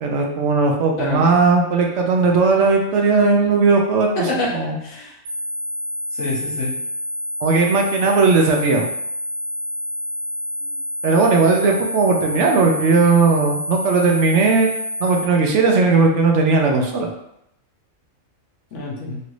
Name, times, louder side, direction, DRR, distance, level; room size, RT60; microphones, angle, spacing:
voice 1, 0.0-4.8 7.4-8.9 11.0-14.7 15.0-17.1, right 4 dB, 65° right, 2 dB, 0.8 m, -17 dB
voice 2, 0.9-1.3 4.2-4.5 4.8-5.1 6.1-6.8 10.6-10.8 18.7-19.2, left 2 dB, 65° left, -2 dB, 1.1 m, -26 dB
sound 1, 5.2-15.2, left 1 dB, 85° right, 1.2 m, -28 dB
3.1 x 2.5 x 3.0 m, 0.78 s
omnidirectional pair, 1.4 m